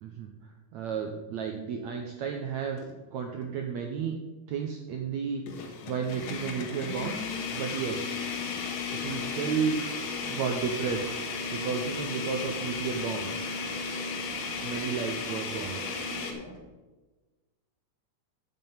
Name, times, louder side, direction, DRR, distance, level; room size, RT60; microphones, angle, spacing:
voice 1, 0.0-2.8 3.1-4.2 4.5-7.2 7.5-8.3 8.9-9.8 10.2-11.0 11.5-13.3 14.6-15.8, right 6 dB, 80° right, 3 dB, 1.6 m, -33 dB
sound 1, 2.7-2.9 3.4-3.5 5.5-16.3, left 4 dB, 75° left, 2.9 m, -35 dB
sound 2, 6.1-16.6, left 2 dB, 35° left, 2.1 m, -46 dB
9.4 x 7.6 x 5.6 m, 1.2 s
omnidirectional pair, 4.2 m